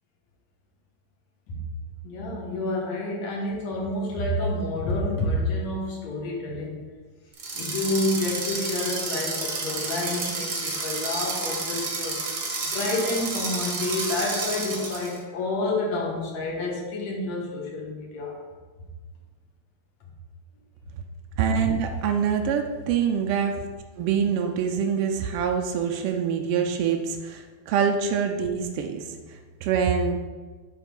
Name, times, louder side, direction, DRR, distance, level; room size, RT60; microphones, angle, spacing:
voice 1, 2.0-6.8 7.5-12.2 12.7-18.4, left 2 dB, 70° left, -1 dB, 2.5 m, -29 dB
sound 1, 7.3-15.2, right 3 dB, 55° right, 1.1 m, -30 dB
voice 2, 21.4-23.5 24.0-30.2, right 7 dB, 85° right, 3 dB, 1.3 m, -25 dB
9.4 x 3.6 x 5.3 m, 1.4 s
omnidirectional pair, 3.3 m